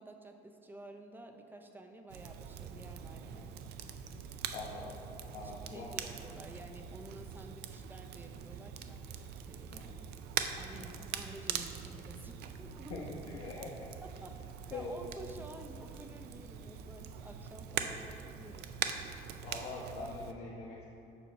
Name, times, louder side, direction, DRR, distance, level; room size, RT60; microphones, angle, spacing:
voice 1, 0.0-3.5 5.4-9.7 10.5-13.1 13.6-13.7 14.0-14.3 14.7-19.1, right 1 dB, 10° right, 5 dB, 0.5 m, -51 dB
Crackle, 2.1-20.3, right 8 dB, 75° right, 0.4 m, -43 dB
voice 2, 4.5-4.9 5.3-5.9 9.7-9.9 10.7-11.0 12.9-13.9 14.7-14.9 18.4-18.6 19.4-20.8, left 3 dB, 70° left, -5 dB, 0.9 m, -44 dB
6.9 x 3.0 x 5.4 m, 2.8 s
cardioid pair, 110°, 17 cm